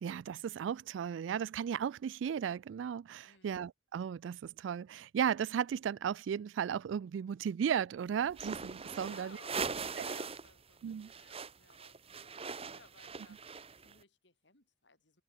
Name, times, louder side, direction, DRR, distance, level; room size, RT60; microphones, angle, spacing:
voice 1, 0.0-9.4 10.0-10.1 10.8-11.1, right 8 dB, 90° right, 0.3 m, -35 dB
sound 1, 8.3-10.5 10.8-13.9, right 5 dB, 35° right, 1.2 m, -41 dB
voice 2, 9.0-12.4 12.7-13.4 13.8-15.2, left 3 dB, 70° left, 6.1 m, -60 dB
head